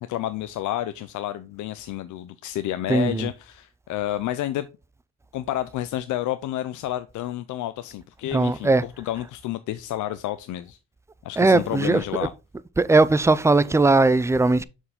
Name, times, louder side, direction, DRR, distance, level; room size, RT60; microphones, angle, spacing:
voice 1, 0.1-4.7 5.3-10.8 11.2-12.3, left 13 dB, 80° left, 0.6 m, -30 dB
voice 2, 2.9-3.3 8.3-8.8 11.4-12.0 12.8-14.6, right 3 dB, 10° right, 0.4 m, -19 dB
6.6 x 4.6 x 3.7 m
cardioid pair, 90°, 30 cm